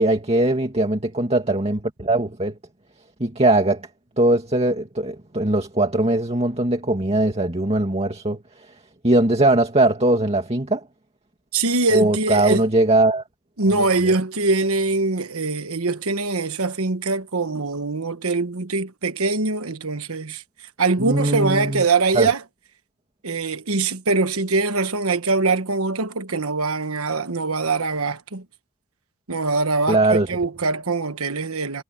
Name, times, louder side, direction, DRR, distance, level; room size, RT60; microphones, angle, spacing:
voice 1, 0.0-2.6 3.2-3.9 4.2-8.7 9.0-10.9 11.9-13.2 13.7-14.1 21.0-21.8 22.1-22.3 29.9-30.4, right 2 dB, 30° right, 2.2 m, -20 dB
voice 2, 11.5-12.7 13.6-20.4 20.8-22.4 23.2-28.4 29.3-31.8, right 3 dB, 70° right, 1.3 m, -23 dB
head